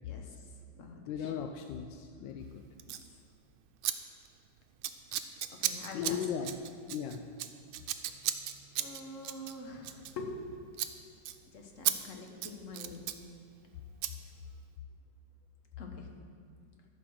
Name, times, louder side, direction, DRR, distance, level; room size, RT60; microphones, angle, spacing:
voice 1, 0.0-0.4 0.7-1.3 5.5-6.2 8.8-10.3 11.5-13.1 15.8-16.1, left 3 dB, 45° left, 2 dB, 1.3 m, -45 dB
voice 2, 1.1-2.6 5.9-6.5 6.8-7.2, left 8 dB, 75° left, 4 dB, 1.2 m, -37 dB
Scissors, 2.8-3.1 3.8-3.9 4.2-4.5 4.8-10.5 10.7-10.9 11.2-11.4 11.8-12.0 12.3-13.2 14.0-14.1, right 12 dB, 85° right, 1.4 m, -35 dB
13.5 x 4.7 x 6.3 m, 2.1 s
omnidirectional pair, 2.2 m